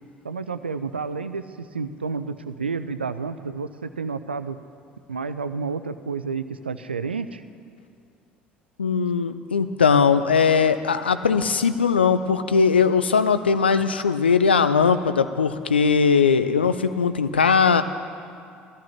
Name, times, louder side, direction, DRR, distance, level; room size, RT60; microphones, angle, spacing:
voice 1, 0.2-4.6 5.1-7.4, right 5 dB, 85° right, 12 dB, 0.4 m, -30 dB
voice 2, 8.8-17.8, left 5 dB, 80° left, 11 dB, 0.4 m, -20 dB
19.5 x 14.0 x 2.9 m, 2.4 s
figure-of-eight pair, 60°, 6 cm